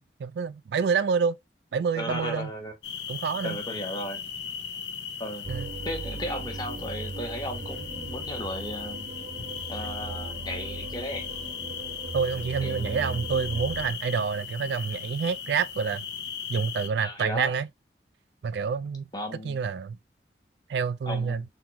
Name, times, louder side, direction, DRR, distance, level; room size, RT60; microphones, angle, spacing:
voice 1, 0.0-1.4 1.7-2.5 3.1-3.6 5.5-5.7 12.1-16.0 16.5-17.7 18.4-19.1 19.4-20.0 20.7-21.4, right 6 dB, 75° right, 0.3 m, -28 dB
voice 2, 2.0-2.7 3.4-4.2 5.2-5.5 5.8-9.1 9.7-11.3 12.6-13.2 17.0-17.5 19.1-19.6 21.1-21.4, equal, 20° left, 1.0 m, -35 dB
sound 1, 2.8-16.9, left 7 dB, 80° left, 0.5 m, -38 dB
sound 2, 5.4-13.9, right 3 dB, 45° right, 0.8 m, -38 dB
3.6 x 2.9 x 2.8 m
head